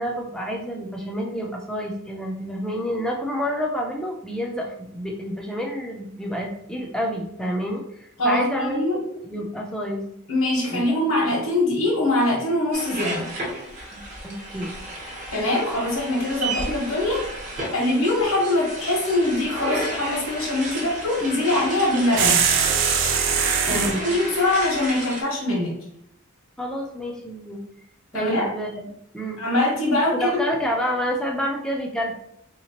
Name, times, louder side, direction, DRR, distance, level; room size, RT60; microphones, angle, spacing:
voice 1, 0.0-8.8 9.2-10.0 10.7-11.0 13.9-14.7 23.7-24.1 26.6-27.6 28.1-28.9 29.1-29.4 30.1-32.1, equal, 5° left, -1 dB, 0.4 m, -28 dB
voice 2, 8.2-9.0 10.3-13.3 15.3-17.3 17.7-22.4 23.6-25.7 28.1-28.5 29.4-30.4, left 1 dB, 85° left, -5 dB, 1.2 m, -23 dB
sound 1, 12.7-25.2, right 1 dB, 40° right, 0.9 m, -33 dB
sound 2, 22.2-24.0, right 7 dB, 65° right, 0.4 m, -21 dB
3.5 x 2.9 x 2.8 m, 0.74 s
head